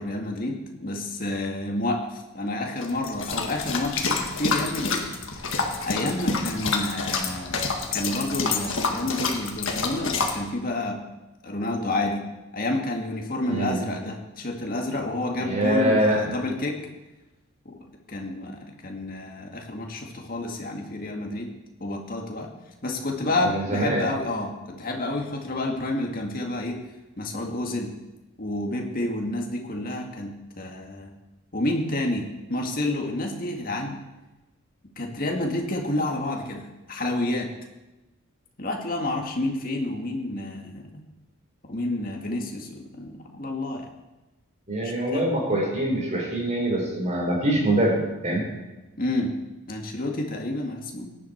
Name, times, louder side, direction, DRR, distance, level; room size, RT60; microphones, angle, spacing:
voice 1, 0.0-5.1 5.8-11.0 11.4-12.2 12.5-16.8 17.7-17.8 18.1-21.5 21.8-22.5 22.8-26.9 27.2-28.0 28.4-31.1 31.5-34.0 35.0-37.5 38.6-41.0 41.6-43.9 44.8-45.3 49.0-49.4 49.7-51.2, left 2 dB, 40° left, 1 dB, 2.0 m, -29 dB
sound 1, 2.8-10.3, left 4 dB, 60° left, 1.7 m, -28 dB
voice 2, 13.5-13.8 15.4-16.2 23.4-24.0 44.7-47.9 48.2-48.4, right 1 dB, 30° right, -2 dB, 4.8 m, -24 dB
17.5 x 10.5 x 4.6 m, 1.1 s
head